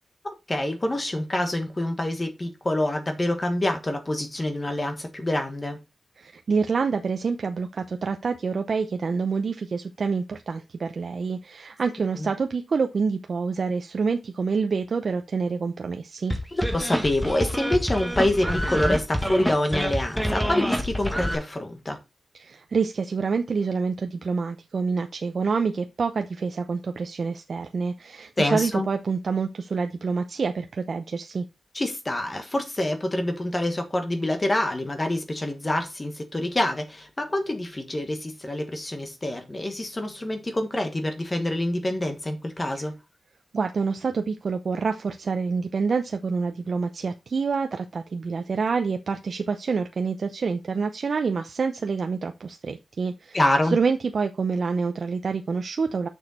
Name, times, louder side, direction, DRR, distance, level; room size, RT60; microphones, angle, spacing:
voice 1, 0.5-5.8 12.2-12.3 16.5-22.0 28.4-28.9 31.7-42.9 53.3-53.8, left 1 dB, 25° left, 1.3 m, -26 dB
voice 2, 6.2-16.3 22.3-31.5 42.7-42.8 43.5-56.1, right 5 dB, 60° right, 0.6 m, -27 dB
sound 1, 16.3-21.3, equal, ahead, 1.7 m, -27 dB
6.6 x 6.4 x 4.2 m
wide cardioid pair, 95°, 0 cm